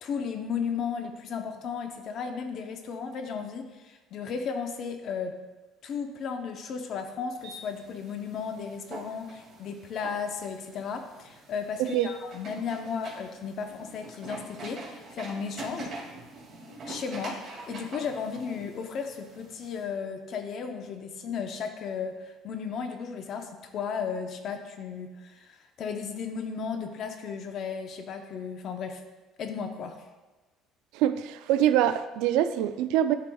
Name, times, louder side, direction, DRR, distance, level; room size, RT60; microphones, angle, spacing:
voice 1, 0.0-5.3 5.8-16.0 16.9-29.0 29.4-30.0, left 6 dB, 50° left, 6 dB, 0.7 m, -35 dB
sound 1, 7.4-19.8, right 2 dB, 40° right, 2.2 m, -45 dB
voice 2, 30.9-33.2, right 11 dB, 80° right, 11 dB, 0.4 m, -24 dB
12.0 x 4.7 x 2.3 m, 1.2 s
cardioid pair, 135°, 0 cm